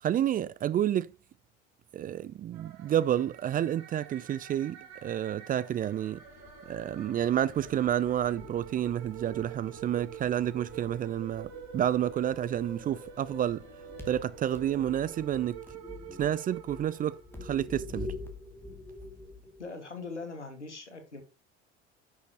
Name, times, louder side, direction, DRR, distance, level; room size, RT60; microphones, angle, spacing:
voice 1, 0.0-1.1 1.9-6.2 6.7-13.6 14.1-15.6 16.2-18.1, right 10 dB, 25° right, 0.5 m, -30 dB
sound 1, 2.5-17.8, right 9 dB, 50° right, 3.8 m, -47 dB
sound 2, 6.1-15.5, left 6 dB, 65° left, 2.2 m, -54 dB
sound 3, 7.6-10.0 10.3-11.4 13.8-19.6, left 2 dB, 5° left, 2.5 m, -45 dB
voice 2, 19.6-21.2, left 3 dB, 85° left, 2.2 m, -41 dB
10.5 x 6.4 x 3.0 m
figure-of-eight pair, 70°, 34 cm